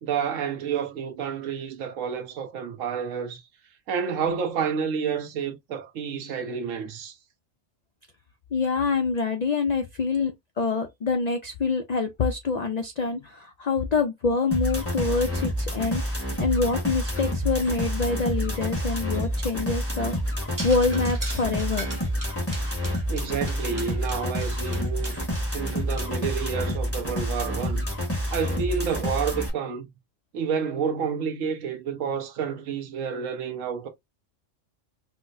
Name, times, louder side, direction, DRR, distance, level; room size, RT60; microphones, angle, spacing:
voice 1, 0.0-3.4 3.9-7.2 23.1-25.2 25.5-27.9 28.3-29.9 30.3-33.9, right 7 dB, 90° right, 1.1 m, -29 dB
voice 2, 8.5-21.9, left 4 dB, 75° left, 0.3 m, -26 dB
sound 1, 14.5-29.5, equal, 10° left, 1.0 m, -28 dB
sound 2, 19.1-26.0, right 2 dB, 20° right, 0.7 m, -41 dB
4.1 x 2.0 x 2.5 m
omnidirectional pair, 1.3 m